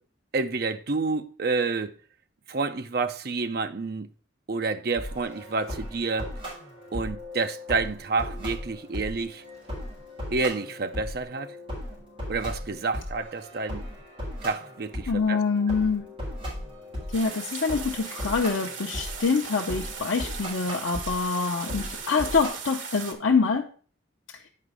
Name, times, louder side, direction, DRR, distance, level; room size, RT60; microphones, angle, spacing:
voice 1, 0.3-1.9 2.5-4.1 4.5-6.4 6.9-9.4 10.3-11.6 12.3-13.8 14.4-15.4, right 3 dB, 50° right, 0.6 m, -29 dB
sound 1, 5.0-22.5, equal, 30° right, 4.3 m, -37 dB
voice 2, 15.1-16.1 17.1-23.7, left 4 dB, 80° left, 0.7 m, -25 dB
sound 2, 17.1-23.1, right 6 dB, 80° right, 1.4 m, -38 dB
8.5 x 5.1 x 4.8 m
head